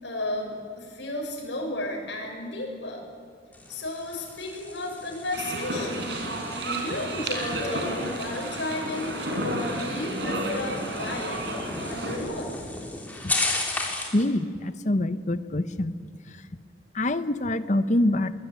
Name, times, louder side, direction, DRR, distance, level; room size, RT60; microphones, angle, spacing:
voice 1, 0.0-3.0 3.7-6.2 6.6-9.1 9.4-12.5, left 1 dB, 70° left, 0 dB, 6.6 m, -33 dB
sound 1, 3.5-14.2, left 2 dB, 10° left, 3.3 m, -35 dB
sound 2, 5.3-12.2, right 1 dB, 70° right, 4.5 m, -31 dB
voice 2, 14.1-15.9 16.9-18.3, left 1 dB, 40° left, 12 dB, 1.0 m, -25 dB
22.5 x 19.5 x 9.3 m, 2.1 s
head